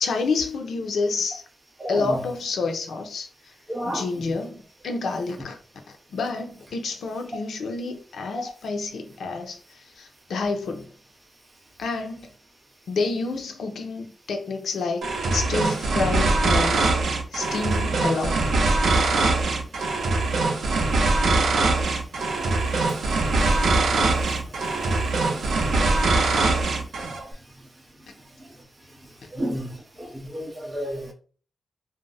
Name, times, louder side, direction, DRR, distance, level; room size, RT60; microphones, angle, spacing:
voice 1, 0.0-1.4 1.9-3.3 3.8-5.6 6.1-10.9 11.8-12.3 12.9-16.9 17.3-18.4 29.2-29.3, left 4 dB, 85° left, 0.5 m, -29 dB
voice 2, 3.7-4.0 23.5-23.6 24.1-24.2 29.3-29.7 30.0-31.1, equal, 20° right, 0.7 m, -31 dB
sound 1, 15.0-27.2, right 3 dB, 70° right, 0.5 m, -22 dB
2.4 x 2.0 x 3.8 m
wide cardioid pair, 170°, 0 cm